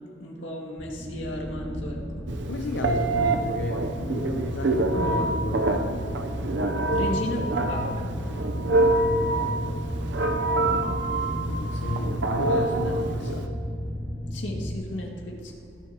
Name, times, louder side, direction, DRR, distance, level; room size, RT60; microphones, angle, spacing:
voice 1, 0.2-2.3 6.9-8.1 14.3-15.5, left 1 dB, 85° left, -1 dB, 2.0 m, -34 dB
sound 1, 0.8-14.8, equal, 30° right, 1.2 m, -33 dB
Telephone, 2.3-13.5, right 2 dB, 75° right, 0.7 m, -26 dB
voice 2, 2.5-6.1 7.0-7.1 8.7-9.9 11.5-13.5, left 2 dB, 70° left, 3 dB, 0.6 m, -33 dB
22.5 x 7.7 x 2.9 m, 2.5 s
head